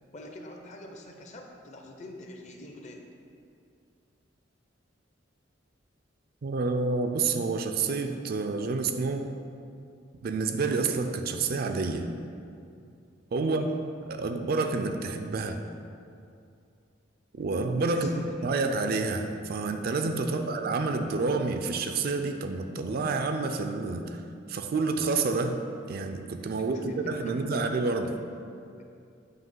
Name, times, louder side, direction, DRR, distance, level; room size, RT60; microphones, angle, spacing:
voice 1, 0.1-3.0 13.4-13.7 17.9-18.5 20.2-20.5 26.7-27.6 28.0-28.1, left 1 dB, 35° left, 2 dB, 0.6 m, -45 dB
voice 2, 6.4-9.3 10.2-12.1 13.3-13.7 14.1-15.6 17.3-18.1 18.4-24.2 24.5-25.6 25.9-28.2, right 3 dB, 50° right, 6 dB, 0.4 m, -29 dB
7.7 x 2.8 x 5.4 m, 2.5 s
head